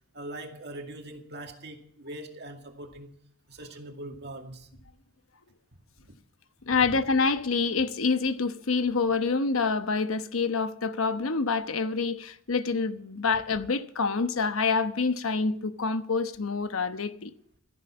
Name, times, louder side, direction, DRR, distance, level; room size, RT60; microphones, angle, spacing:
voice 1, 0.1-3.2 3.5-4.7 5.7-6.2 6.8-6.9, right 1 dB, 55° right, 2.1 m, -42 dB
voice 2, 6.7-17.3, left 4 dB, 85° left, 1.0 m, -27 dB
13.5 x 11.0 x 7.2 m
head